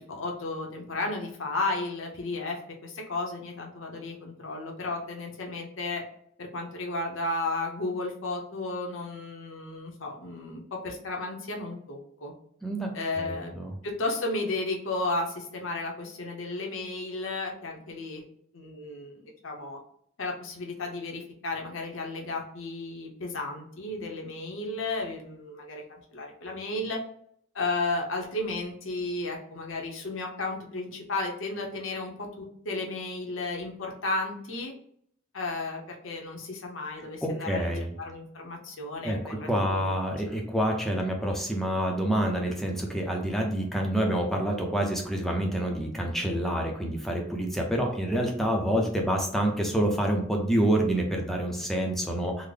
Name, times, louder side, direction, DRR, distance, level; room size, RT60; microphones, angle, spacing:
voice 1, 0.0-6.0 6.4-12.3 12.9-13.5 13.8-18.2 18.5-19.8 20.2-27.0 27.5-34.7 35.3-37.7 38.0-39.9, left 2 dB, 75° left, 1 dB, 0.7 m, -33 dB
voice 2, 13.2-13.7 37.2-37.9 39.0-52.5, right 1 dB, ahead, 0 dB, 0.5 m, -27 dB
3.7 x 2.0 x 3.3 m, 0.68 s
head